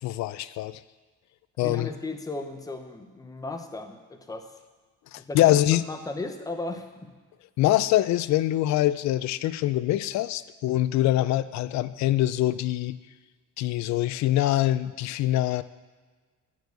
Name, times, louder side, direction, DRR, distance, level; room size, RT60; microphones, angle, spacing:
voice 1, 0.0-0.8 1.6-1.9 5.1-5.8 7.6-13.0 13.6-15.6, left 14 dB, 60° left, 15 dB, 0.4 m, -24 dB
voice 2, 1.6-4.5 5.2-5.5 5.9-7.1, left 2 dB, 10° left, 6 dB, 0.7 m, -36 dB
9.1 x 4.8 x 7.8 m, 1.4 s
cardioid pair, 140°, 31 cm